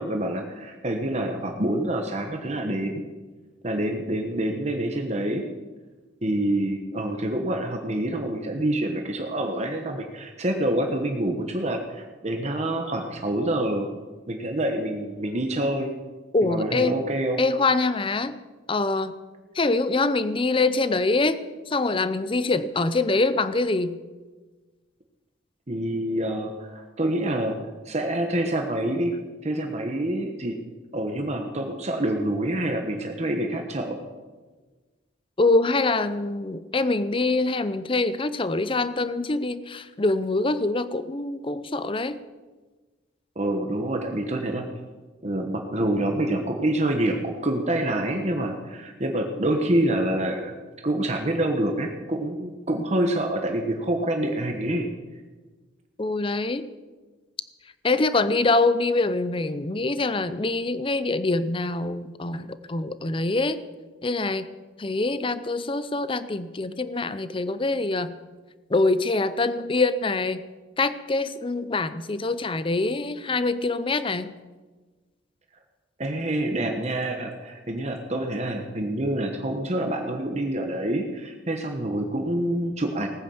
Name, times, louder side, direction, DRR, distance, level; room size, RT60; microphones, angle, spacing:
voice 1, 0.0-3.0 3.6-5.4 6.2-13.9 14.3-15.9 16.4-17.4 25.7-27.6 27.8-29.1 29.4-30.6 30.9-34.0 43.3-44.7 45.2-50.5 50.8-54.9 76.0-83.1, right 1 dB, 35° right, 3 dB, 1.3 m, -27 dB
voice 2, 16.3-16.9 17.4-18.3 18.7-19.2 19.5-21.4 21.7-24.0 35.4-42.2 56.0-56.7 57.8-63.6 64.0-64.4 64.8-68.2 68.7-70.4 70.8-74.3, left 3 dB, 30° left, 13 dB, 0.6 m, -24 dB
18.5 x 9.7 x 7.1 m, 1.3 s
head